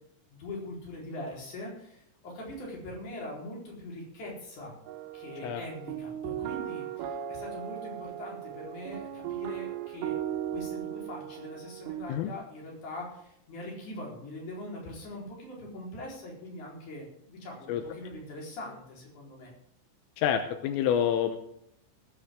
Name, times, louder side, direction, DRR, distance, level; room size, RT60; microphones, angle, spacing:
voice 1, 0.3-4.8 5.1-10.1 10.5-19.5, left 1 dB, 40° left, -3 dB, 5.2 m, -42 dB
sound 1, 4.9-12.1, right 11 dB, 80° right, 3.5 m, -37 dB
voice 2, 20.2-21.4, left 9 dB, 85° left, 7 dB, 3.5 m, -27 dB
19.5 x 9.6 x 3.7 m, 0.74 s
omnidirectional pair, 5.8 m